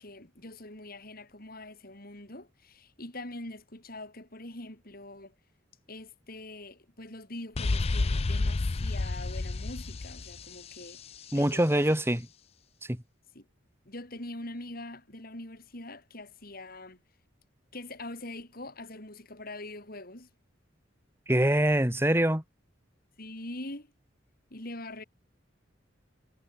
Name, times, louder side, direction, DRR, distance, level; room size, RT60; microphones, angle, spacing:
voice 1, 0.0-5.3 5.9-11.0 11.3-11.9 13.3-13.5 13.8-17.0 17.7-20.3 23.2-23.9 24.5-25.0, left 2 dB, 50° left, 6.3 m, -43 dB
sound 1, 7.6-11.3, left 3 dB, 30° left, 0.5 m, -30 dB
voice 2, 11.3-12.2 12.9-13.0 21.3-22.4, right 1 dB, 15° right, 2.5 m, -24 dB
head